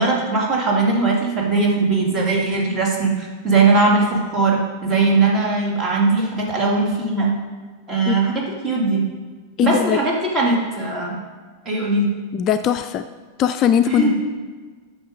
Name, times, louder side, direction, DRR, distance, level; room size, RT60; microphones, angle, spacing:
voice 1, 0.0-7.3 7.9-9.0 9.6-11.2 11.6-12.1 13.9-14.2, right 3 dB, 25° right, -2 dB, 2.4 m, -19 dB
voice 2, 9.6-10.0 12.3-13.0 13.4-14.2, left 9 dB, 35° left, 9 dB, 0.4 m, -19 dB
9.3 x 6.4 x 5.3 m, 1.5 s
figure-of-eight pair, 90°, 0 cm